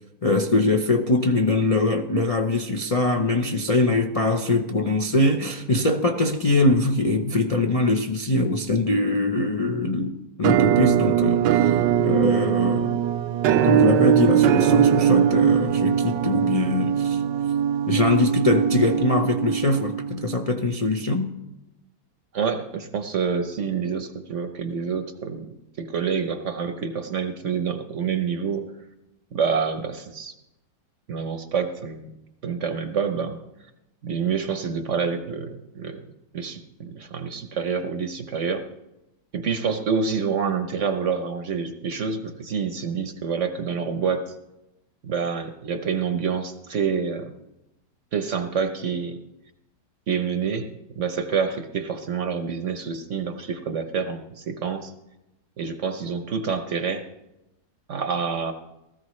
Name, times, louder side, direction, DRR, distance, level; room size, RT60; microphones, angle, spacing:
voice 1, 0.2-11.7 12.0-13.0 13.6-17.2 17.9-21.3, left 2 dB, 45° left, 4 dB, 0.4 m, -22 dB
Musical instrument, 10.4-20.2, right 9 dB, 85° right, 1.3 m, -21 dB
voice 2, 22.3-25.5 25.8-28.7 29.3-30.3 31.1-32.1 32.4-33.4 34.0-36.0 36.3-38.6 39.3-44.2 45.0-47.3 48.1-49.2 50.1-50.7 50.9-54.9 55.6-57.1 57.9-58.5, right 6 dB, 55° right, 8 dB, 1.0 m, -27 dB
18.5 x 14.0 x 3.2 m, 0.93 s
omnidirectional pair, 1.9 m